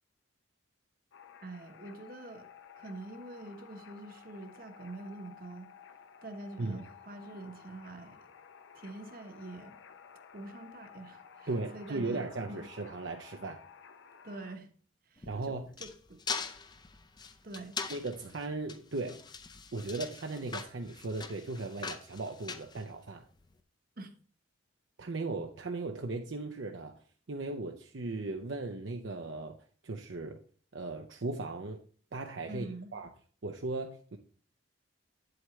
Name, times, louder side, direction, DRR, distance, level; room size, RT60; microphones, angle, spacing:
sound 1, 1.1-14.6, left 7 dB, 65° left, 0.6 m, -54 dB
voice 1, 1.4-2.5 2.8-5.7 6.2-8.3 8.7-9.8 10.3-12.6 14.2-14.7 15.1-16.2 17.4-17.8 24.0-24.1 32.5-32.9, right 2 dB, 45° right, 1.1 m, -46 dB
voice 2, 11.5-13.6 15.3-15.7 17.9-19.2 19.7-23.3 25.0-27.0 27.3-29.6 29.8-30.4 30.7-31.8 32.1-32.7 32.9-33.1 33.4-34.2, right 3 dB, 65° right, 0.6 m, -37 dB
sound 2, 15.2-23.4, left 5 dB, 20° left, 0.5 m, -42 dB
8.6 x 7.9 x 3.1 m
head